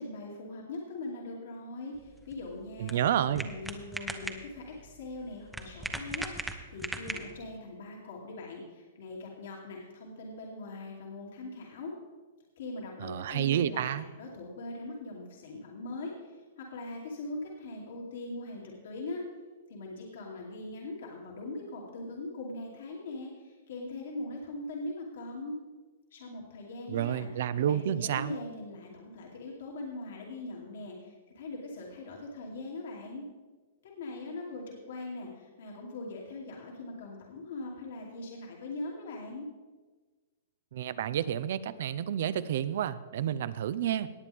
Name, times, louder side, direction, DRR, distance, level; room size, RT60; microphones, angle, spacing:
voice 1, 0.0-3.0 3.4-11.9 12.6-19.2 19.7-25.6 26.1-27.3 27.6-33.2 33.8-39.5, left 2 dB, 70° left, -2 dB, 2.6 m, -41 dB
sound 1, 1.9-7.6, right 1 dB, 5° right, 0.9 m, -40 dB
voice 2, 2.8-3.5 13.0-14.0 26.9-28.3 40.7-44.1, right 10 dB, 65° right, 16 dB, 0.5 m, -30 dB
18.5 x 8.4 x 3.5 m, 1.3 s
hypercardioid pair, 135°, 0 cm